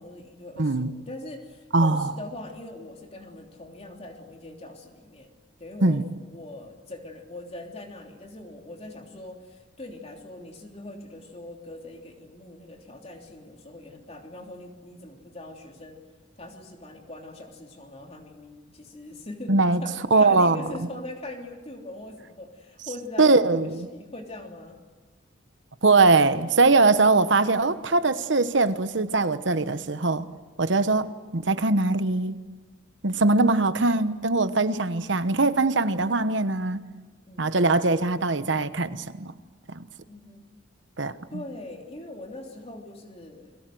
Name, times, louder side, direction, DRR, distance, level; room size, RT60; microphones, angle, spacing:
voice 1, 0.0-5.3 5.6-6.0 6.3-16.0 16.4-19.5 19.8-24.8 37.3-37.5 40.0-40.5 41.3-43.6, left 1 dB, 30° left, 3.2 m, -41 dB
voice 2, 0.6-0.9 1.7-2.1 5.8-6.0 19.5-19.8 20.1-20.6 23.2-23.9 25.8-30.3 30.6-32.4 33.0-36.8 37.4-39.3 39.7-39.8 41.0-41.4, right 3 dB, 70° right, 1.1 m, -21 dB
30.0 x 23.0 x 7.8 m
head